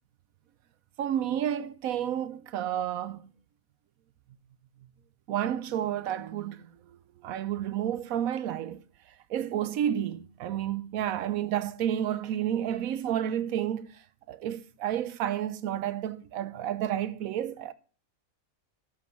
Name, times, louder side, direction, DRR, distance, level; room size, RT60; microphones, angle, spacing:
voice 1, 1.0-3.3 5.3-8.8 9.3-14.0 14.3-17.7, right 10 dB, 75° right, 1.0 m, -31 dB
12.5 x 5.2 x 4.6 m
omnidirectional pair, 1.5 m